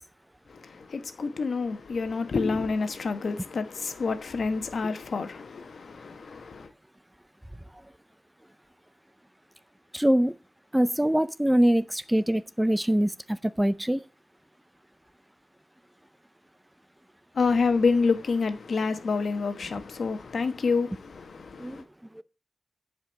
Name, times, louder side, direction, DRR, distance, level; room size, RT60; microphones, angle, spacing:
voice 1, 0.5-6.7 17.3-21.8, left 4 dB, 60° left, 1.1 m, -28 dB
voice 2, 9.9-10.4 10.7-14.0 21.6-21.8 22.1-22.2, right 1 dB, 5° right, 0.4 m, -24 dB
10.5 x 5.1 x 6.5 m
wide cardioid pair, 165°, 0 cm